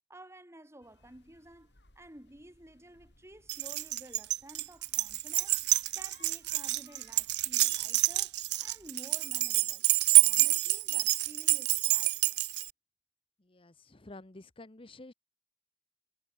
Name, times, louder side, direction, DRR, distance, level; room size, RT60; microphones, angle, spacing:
voice 1, 0.1-5.6 5.9-9.8 10.1-12.4, right 1 dB, 15° right, 3.7 m, -53 dB
sound 1, 0.8-9.0, left 3 dB, 70° left, 4.8 m, -64 dB
Keys jangling, 3.5-12.7, right 18 dB, 70° right, 0.5 m, -27 dB
voice 2, 13.5-15.1, left 2 dB, 30° left, 1.0 m, -50 dB
head